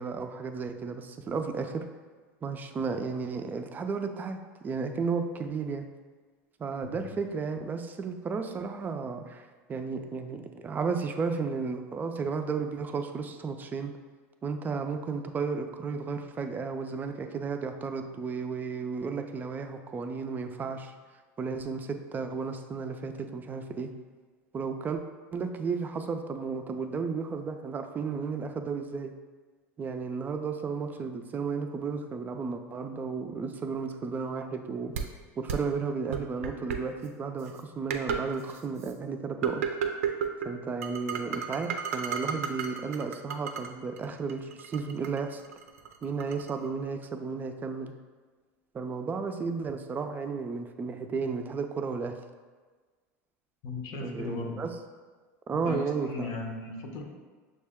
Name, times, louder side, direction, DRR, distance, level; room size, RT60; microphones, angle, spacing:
voice 1, 0.0-1.9 2.4-5.9 6.6-13.9 14.4-20.9 21.4-23.9 24.5-25.0 25.3-29.1 29.8-34.9 35.4-39.6 40.4-45.4 46.0-47.9 48.7-52.2 54.0-54.7 55.5-56.3, right 5 dB, 25° right, 7 dB, 0.4 m, -33 dB
sound 1, 35.0-35.1 35.5-35.6 36.1-36.8 37.5-37.6 37.9-38.2 38.5-38.9 39.4-40.5 40.8-43.7 44.0-46.5, right 7 dB, 90° right, 0.4 m, -32 dB
voice 2, 53.6-54.6 55.7-57.0, left 3 dB, 55° left, 2 dB, 0.7 m, -37 dB
6.4 x 2.1 x 3.5 m, 1.4 s
supercardioid pair, 110°, 7 cm